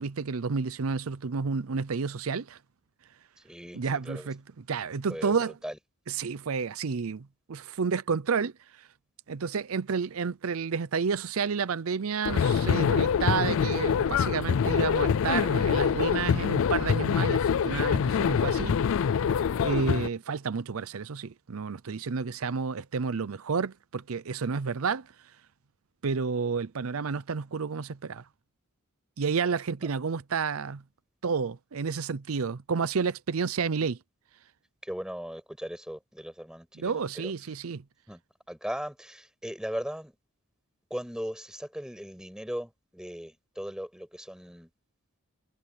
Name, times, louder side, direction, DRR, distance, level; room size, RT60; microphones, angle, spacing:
voice 1, 0.0-2.6 3.7-4.4 4.7-5.5 6.1-8.5 9.3-18.8 19.6-25.1 26.0-28.2 29.2-30.8 31.2-34.0 36.8-37.8, right 5 dB, 85° right, 0.6 m, -30 dB
voice 2, 3.4-4.3 5.1-5.4 5.6-5.8 34.8-37.3 38.1-38.2 38.5-40.1 40.9-44.7, equal, 5° right, 6.8 m, -38 dB
sound 1, 12.2-20.1, left 7 dB, 65° left, 0.4 m, -25 dB
head